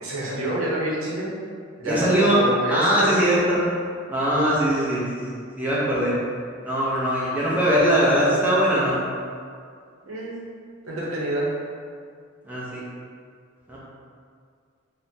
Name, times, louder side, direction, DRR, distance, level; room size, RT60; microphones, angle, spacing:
voice 1, 0.0-1.3 1.8-3.3 10.1-10.4 10.8-11.5, right 1 dB, 85° right, -5 dB, 0.7 m, -27 dB
voice 2, 1.8-2.4 2.7-3.6 4.1-6.2 6.6-9.0 12.4-12.8 13.7-13.8, equal, 10° right, -8 dB, 0.5 m, -21 dB
3.6 x 2.0 x 2.7 m, 2.1 s
head